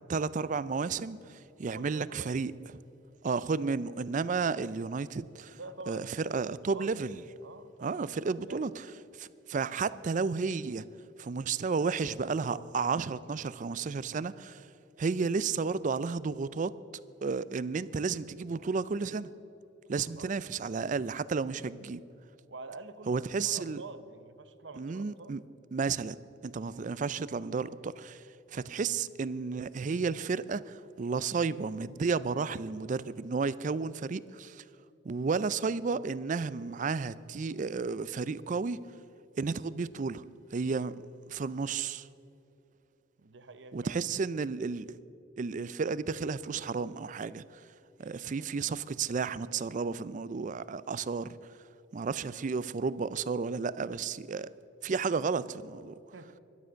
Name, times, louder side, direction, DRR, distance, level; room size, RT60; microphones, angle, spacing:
voice 1, 0.1-2.5 3.2-5.6 5.9-7.2 7.8-8.9 9.1-10.8 11.2-14.7 15.0-16.7 17.2-19.3 19.9-22.0 23.1-23.8 24.8-25.4 25.7-26.2 26.4-28.2 28.5-34.6 35.0-38.8 39.4-40.2 40.5-41.0 41.3-42.1 43.7-44.9 45.4-47.6 48.0-51.4 51.9-54.5 54.8-55.9, right 4 dB, 40° right, 0.4 m, -32 dB
voice 2, 1.7-2.3 5.5-6.9 7.4-7.9 8.5-8.6 20.0-20.3 22.5-25.4 43.2-44.0 48.0-48.6 56.1-56.3, right 3 dB, 65° right, 0.8 m, -47 dB
12.5 x 12.0 x 6.3 m
head